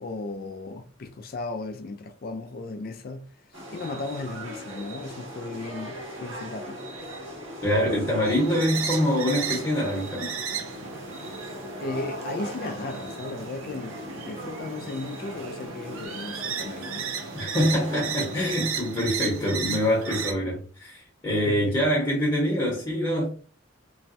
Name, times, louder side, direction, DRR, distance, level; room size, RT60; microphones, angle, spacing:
voice 1, 0.0-3.3 3.7-6.8 11.8-17.1 19.0-19.1 21.5-21.8, left 3 dB, 45° left, 0.4 m, -36 dB
sound 1, 3.5-18.7, right 1 dB, 65° right, 1.1 m, -39 dB
voice 2, 7.6-10.3 17.3-23.3, equal, 25° left, 0.9 m, -25 dB
sound 2, 8.2-20.3, right 6 dB, 85° right, 0.5 m, -35 dB
3.0 x 2.2 x 2.7 m
head